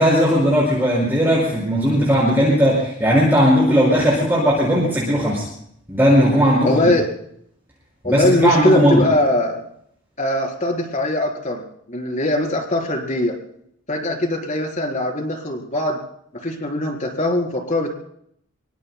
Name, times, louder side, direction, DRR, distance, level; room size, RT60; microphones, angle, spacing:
voice 1, 0.0-5.4 5.9-6.9 8.0-9.0, equal, 10° right, -6 dB, 5.5 m, -17 dB
voice 2, 6.6-7.1 8.0-9.6 10.2-11.6 11.9-13.4 13.9-16.0 16.3-17.9, left 1 dB, 35° left, 2 dB, 4.0 m, -21 dB
26.0 x 23.5 x 2.2 m, 0.69 s
head